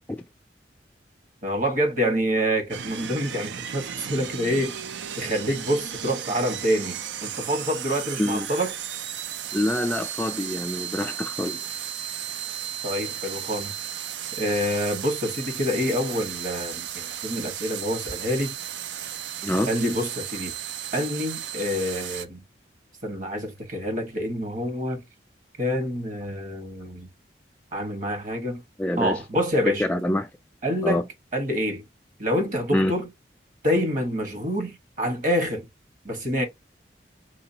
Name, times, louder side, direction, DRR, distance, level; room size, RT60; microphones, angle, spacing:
voice 1, 1.4-4.8 5.2-8.7 12.8-13.8 14.3-18.5 19.7-20.5 20.9-22.4 23.0-25.0 25.6-27.1 27.7-28.6 29.0-29.8 30.6-31.0 31.3-31.8 32.2-33.1 33.6-35.6 36.0-36.4, equal, 50° right, 1.4 m, -27 dB
sound 1, 2.7-22.2, right 9 dB, 85° right, 0.5 m, -34 dB
voice 2, 9.5-11.6 19.4-19.7 28.8-29.2 29.7-30.3 30.8-31.0 32.7-32.9, left 1 dB, 10° left, 0.3 m, -25 dB
4.9 x 3.7 x 2.8 m
head